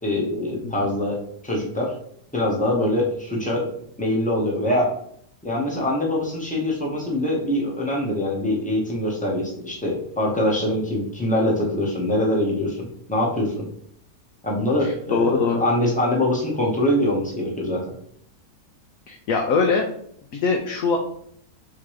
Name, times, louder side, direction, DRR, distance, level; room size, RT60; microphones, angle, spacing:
voice 1, 0.0-1.2 1.4-1.9 2.3-3.7 4.0-4.9 5.4-13.7 14.4-17.9, left 1 dB, 5° left, -3 dB, 0.8 m, -23 dB
voice 2, 14.8-15.6 19.1-19.8 20.3-21.0, left 4 dB, 65° left, 2 dB, 0.9 m, -22 dB
3.7 x 2.9 x 4.7 m, 0.65 s
omnidirectional pair, 1.7 m